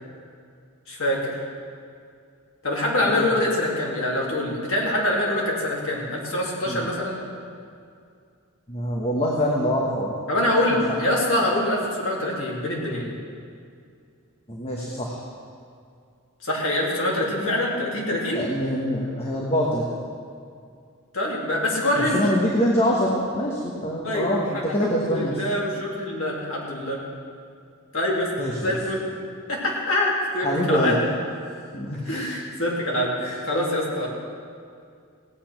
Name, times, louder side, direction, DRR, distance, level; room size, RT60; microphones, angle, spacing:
voice 1, 0.9-1.4 2.6-7.2 10.3-13.1 16.4-18.4 21.1-22.2 24.0-24.3 24.8-27.0 27.9-28.3 28.6-29.1 29.5-31.0 31.9-34.1, left 1 dB, 65° left, -4 dB, 3.0 m, -25 dB
voice 2, 8.7-10.1 10.9-11.0 14.5-15.2 18.3-19.8 22.0-25.4 28.4-28.7 30.4-30.9 31.7-32.3, equal, 30° left, -2 dB, 1.3 m, -25 dB
16.5 x 8.6 x 5.9 m, 2.3 s
head